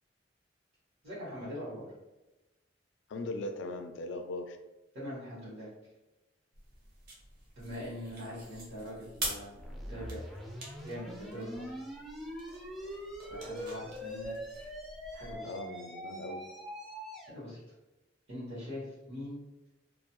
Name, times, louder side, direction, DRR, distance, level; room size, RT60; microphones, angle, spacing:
voice 1, 1.0-1.9 4.9-5.7 7.5-9.6 9.9-10.3 10.8-11.8 13.3-14.7 15.1-15.5 17.3-17.6 18.3-19.4, equal, 85° right, -10 dB, 1.1 m, -42 dB
voice 2, 3.1-4.6 15.4-16.5, left 2 dB, 75° left, 6 dB, 0.3 m, -39 dB
sound 1, 6.5-15.4, right 2 dB, 55° right, 0.7 m, -46 dB
sound 2, 9.6-17.3, equal, ahead, 0.4 m, -43 dB
2.3 x 2.0 x 2.9 m, 1.0 s
head